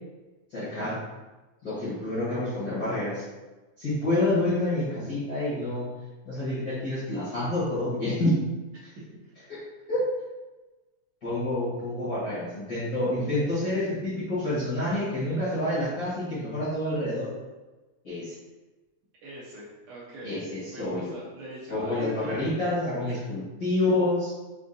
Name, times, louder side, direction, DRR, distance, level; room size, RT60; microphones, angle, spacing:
voice 1, 0.5-1.0 1.6-3.2 3.8-5.8 6.2-8.4 9.9-10.1 11.2-17.3 18.0-18.3 20.2-21.0 21.7-24.3, left 1 dB, 55° left, -12 dB, 1.1 m, -28 dB
voice 2, 8.7-9.5 19.2-20.4 20.7-22.4 23.1-23.3, equal, 75° right, -5 dB, 1.7 m, -42 dB
5.3 x 2.4 x 2.5 m, 1.2 s
omnidirectional pair, 3.5 m